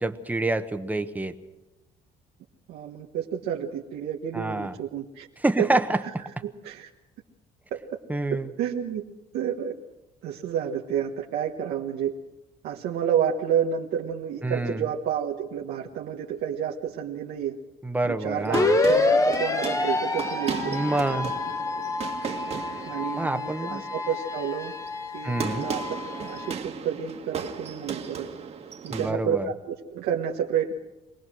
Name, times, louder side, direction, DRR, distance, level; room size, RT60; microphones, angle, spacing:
voice 1, 0.0-1.3 4.3-4.7 5.4-6.0 8.1-8.5 14.4-14.8 17.8-18.7 20.7-21.4 23.2-23.8 25.2-25.7 28.9-29.5, right 2 dB, 10° right, 8 dB, 1.2 m, -27 dB
voice 2, 2.7-5.3 5.6-5.7 6.4-6.9 7.7-7.8 8.3-9.0 9.3-9.7 10.2-12.1 12.6-17.6 18.0-20.8 22.8-24.7 25.1-25.8 26.2-28.3 28.8-30.7, right 8 dB, 85° right, -1 dB, 1.4 m, -30 dB
sound 1, 18.2-29.1, right 6 dB, 40° right, 1.8 m, -36 dB
sound 2, 18.5-26.5, left 2 dB, 20° left, 1.4 m, -27 dB
24.5 x 18.5 x 6.3 m, 1.0 s
cardioid pair, 110°, 17 cm